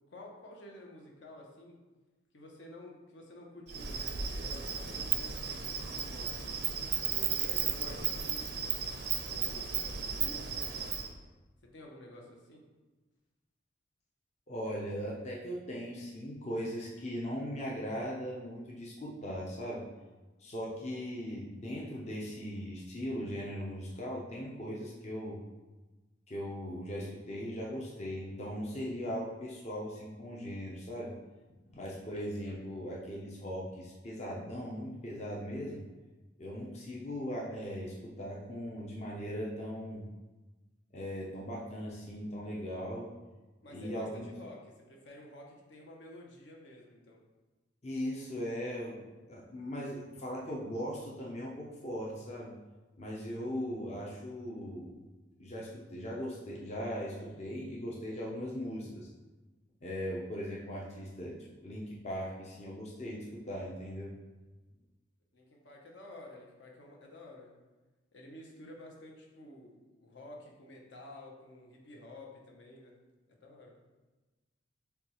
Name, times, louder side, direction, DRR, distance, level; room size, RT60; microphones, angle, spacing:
voice 1, 0.1-1.8 2.3-8.8 9.3-10.9 11.7-12.6 43.6-47.2 65.3-67.5 68.1-72.9 73.3-73.7, left 1 dB, 70° left, -1 dB, 0.8 m, -51 dB
Insect, 3.7-11.1, right 7 dB, 60° right, 0.4 m, -34 dB
voice 2, 14.5-19.8 20.4-25.4 26.3-31.1 31.7-35.8 36.4-40.0 40.9-43.1 43.7-44.3 47.8-52.5 53.0-55.0 55.4-59.1 59.8-64.1, equal, 35° left, -4 dB, 0.6 m, -39 dB
6.8 x 2.3 x 3.0 m, 1.2 s
head